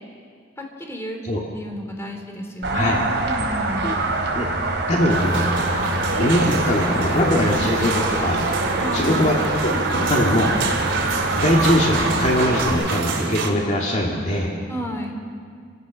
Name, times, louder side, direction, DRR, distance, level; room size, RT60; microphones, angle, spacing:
voice 1, 0.6-1.2 1.5-3.9 8.8-9.3 14.7-15.1, equal, 15° left, 2 dB, 3.0 m, -31 dB
sound 1, 2.6-12.7, right 2 dB, 65° right, 3.9 m, -25 dB
voice 2, 4.9-5.5 6.2-8.4 8.9-10.5 11.4-14.6, left 1 dB, 40° left, -1 dB, 2.1 m, -21 dB
sound 2, 5.1-13.5, right 3 dB, 80° right, 2.9 m, -27 dB
28.5 x 15.5 x 6.3 m, 2.1 s
head